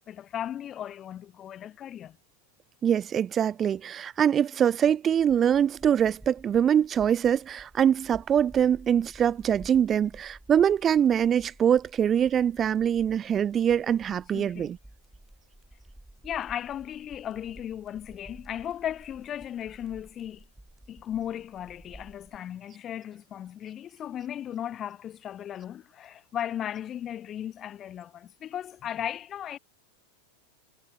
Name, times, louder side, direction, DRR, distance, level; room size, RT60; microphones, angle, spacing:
voice 1, 0.0-2.2 14.3-14.7 16.2-20.5 20.9-29.6, left 10 dB, 30° left, 0.6 m, -36 dB
voice 2, 2.8-14.8, right 9 dB, 25° right, 0.3 m, -23 dB
sound 1, 5.2-22.4, right 1 dB, 5° right, 4.5 m, -53 dB
figure-of-eight pair, 90°, 0 cm